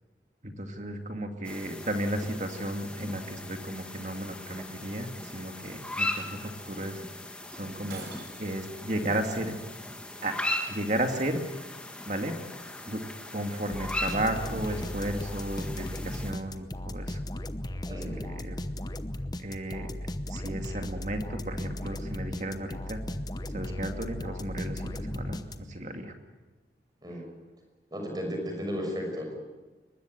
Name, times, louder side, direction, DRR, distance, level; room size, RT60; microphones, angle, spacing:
voice 1, 0.4-7.0 7.5-8.1 8.4-9.6 10.2-10.4 10.7-11.4 12.1-12.4 12.8-13.0 13.3-17.2 18.2-18.6 19.4-19.9 20.3-23.0 23.5-26.1, right 1 dB, 40° right, 5 dB, 2.4 m, -34 dB
sound 1, 1.4-16.3, left 1 dB, 5° left, 1.9 m, -38 dB
Shatter, 7.9-8.7, right 4 dB, 75° right, 4.9 m, -46 dB
sound 2, 13.7-25.9, left 1 dB, 20° left, 0.9 m, -36 dB
voice 2, 17.9-18.2 27.0-27.3 27.9-29.2, equal, 20° right, 2 dB, 6.1 m, -34 dB
23.0 x 20.5 x 9.2 m, 1.2 s
head